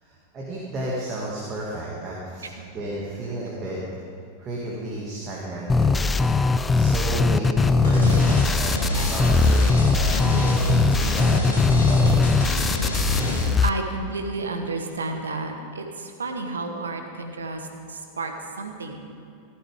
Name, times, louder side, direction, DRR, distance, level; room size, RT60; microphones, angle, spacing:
voice 1, 0.0-2.4 2.7-3.8 4.4-6.2 6.7-12.4, right 1 dB, 25° right, -5 dB, 2.3 m, -33 dB
voice 2, 2.4-2.7 13.2-19.1, right 3 dB, 70° right, 5 dB, 1.3 m, -32 dB
sound 1, 5.7-13.7, left 4 dB, 15° left, 0.4 m, -20 dB
sound 2, 7.8-13.5, left 1 dB, 70° left, 3.5 m, -27 dB
15.5 x 13.0 x 3.7 m, 2.5 s
figure-of-eight pair, 90°, 0 cm